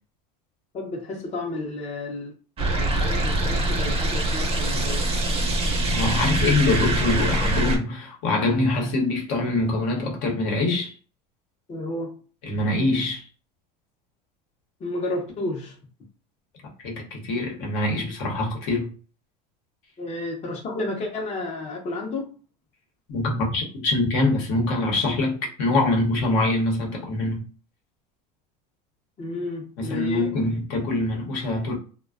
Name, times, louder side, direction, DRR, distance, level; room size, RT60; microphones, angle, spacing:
voice 1, 0.7-2.3 2.8-5.3 11.7-12.1 14.8-15.8 20.0-22.3 29.2-30.3, left 2 dB, 30° left, 0.6 m, -31 dB
sound 1, 2.6-7.8, right 2 dB, 30° right, 0.6 m, -24 dB
voice 2, 5.9-10.9 12.4-13.2 16.8-18.9 23.1-27.5 29.8-31.7, left 2 dB, 65° left, 0.9 m, -24 dB
2.4 x 2.2 x 2.3 m
supercardioid pair, 105°, 21 cm